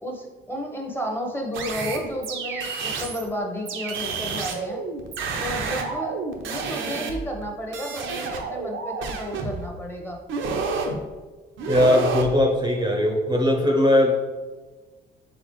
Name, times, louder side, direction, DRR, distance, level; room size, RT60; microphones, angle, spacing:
voice 1, 0.0-4.8 5.4-6.1 6.4-10.2, equal, 10° left, 1 dB, 0.9 m, -32 dB
sound 1, 1.5-3.3 3.7-7.4 7.7-9.7 10.3-10.9 11.6-12.3, right 4 dB, 75° right, 0.7 m, -30 dB
voice 2, 11.7-14.2, left 1 dB, 20° right, 1 dB, 0.6 m, -19 dB
4.1 x 3.9 x 3.1 m, 1.3 s
cardioid pair, 90°, 20 cm